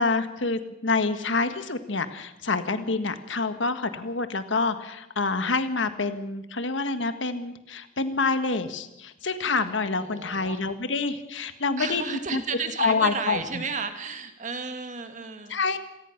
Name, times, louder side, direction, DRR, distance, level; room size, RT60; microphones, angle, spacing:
voice 1, 0.0-12.4 12.8-13.6 15.5-15.8, left 3 dB, 85° left, 10 dB, 1.5 m, -27 dB
voice 2, 10.0-10.6 11.8-15.5, right 5 dB, 40° right, 7 dB, 1.9 m, -33 dB
26.0 x 17.5 x 5.8 m, 0.91 s
head